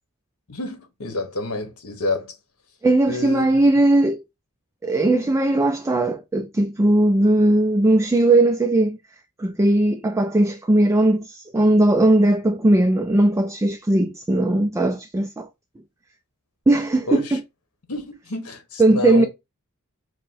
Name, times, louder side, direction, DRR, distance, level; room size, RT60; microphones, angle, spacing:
voice 1, 0.5-2.3 3.1-3.6 17.1-17.4 17.9-19.3, left 2 dB, 80° left, 1.1 m, -28 dB
voice 2, 2.8-4.2 4.8-9.0 9.4-15.5 16.7-17.4 18.8-19.3, right 1 dB, 15° right, 0.3 m, -18 dB
5.0 x 2.1 x 4.1 m
head